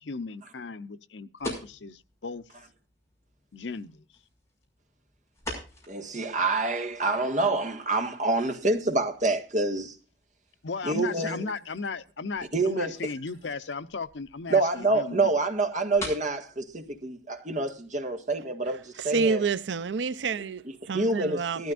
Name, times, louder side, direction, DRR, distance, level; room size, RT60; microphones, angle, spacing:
voice 1, 0.0-2.4 3.5-4.1 10.6-15.3, left 4 dB, 90° left, 0.8 m, -36 dB
sound 1, 1.4-18.3, left 1 dB, 15° left, 5.9 m, -46 dB
voice 2, 5.9-10.0 10.8-11.4 12.5-12.9 14.5-19.4 20.9-21.7, right 2 dB, 45° right, 1.8 m, -27 dB
voice 3, 19.0-21.7, right 5 dB, 85° right, 0.5 m, -29 dB
18.0 x 13.0 x 2.5 m
head